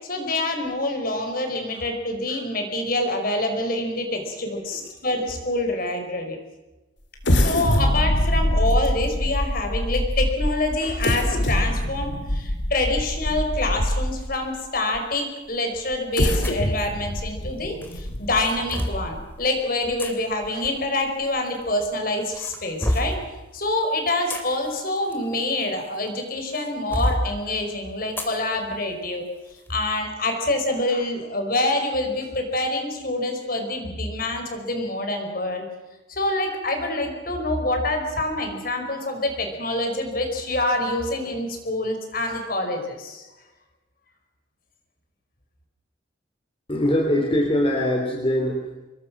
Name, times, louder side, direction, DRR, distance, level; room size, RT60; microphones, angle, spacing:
voice 1, 0.1-6.4 7.3-23.2 23.5-29.3 29.7-35.7 36.1-43.3, left 2 dB, 50° left, 4 dB, 5.1 m, -26 dB
sound 1, 7.2-14.4 14.9-15.0 15.9-19.5 19.9-20.0 20.4-20.7, left 1 dB, 70° left, 2.7 m, -24 dB
sound 2, 16.4-16.7 17.8-19.1 20.0-20.1 21.3-21.9 22.3-23.2 24.0-26.1 26.5-27.2 28.2-28.4 28.8-28.9 29.5-29.7, equal, 10° left, 2.7 m, -28 dB
voice 2, 46.7-48.7, left 1 dB, 30° left, 0 dB, 3.5 m, -22 dB
26.0 x 21.5 x 6.2 m, 1.1 s
head